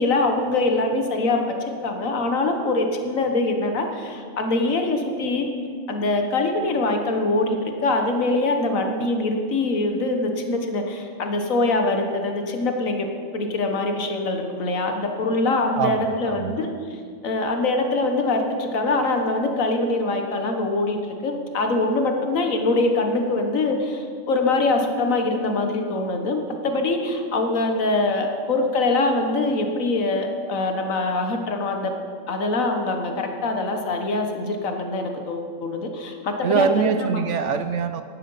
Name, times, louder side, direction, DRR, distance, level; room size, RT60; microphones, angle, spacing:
voice 1, 0.0-5.5 5.9-13.1 13.3-31.9 32.3-37.2, left 2 dB, 80° left, 4 dB, 1.8 m, -23 dB
voice 2, 15.8-16.6 36.4-38.0, right 6 dB, 70° right, 9 dB, 0.9 m, -23 dB
16.5 x 11.5 x 5.6 m, 2.1 s
omnidirectional pair, 1.4 m